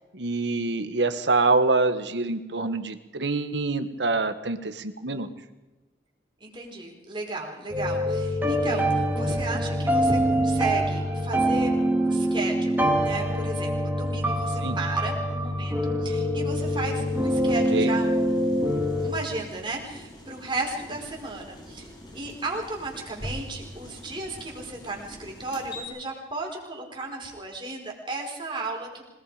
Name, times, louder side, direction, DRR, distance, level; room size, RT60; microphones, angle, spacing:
voice 1, 0.1-5.3 14.6-14.8 17.7-17.9, right 3 dB, 80° right, 9 dB, 1.7 m, -25 dB
voice 2, 6.4-18.7 19.0-29.0, right 2 dB, 25° right, 0 dB, 5.0 m, -34 dB
sound 1, 7.7-19.1, equal, 10° right, 2.8 m, -25 dB
sound 2, 16.5-25.8, left 1 dB, 25° left, 3.5 m, -44 dB
26.5 x 19.5 x 5.1 m, 1.1 s
head